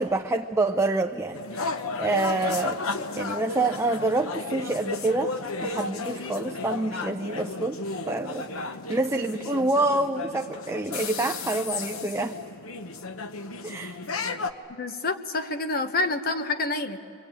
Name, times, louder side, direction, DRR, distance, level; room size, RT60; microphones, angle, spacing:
voice 1, 0.0-2.8 3.2-5.4 5.6-7.8 8.1-12.4 13.6-14.0, right 2 dB, 15° right, 5 dB, 0.6 m, -27 dB
sound 1, 1.3-14.5, left 3 dB, 85° left, 1.0 m, -33 dB
voice 2, 14.7-17.0, left 3 dB, 45° left, 8 dB, 1.3 m, -28 dB
26.5 x 24.0 x 8.8 m, 2.9 s
head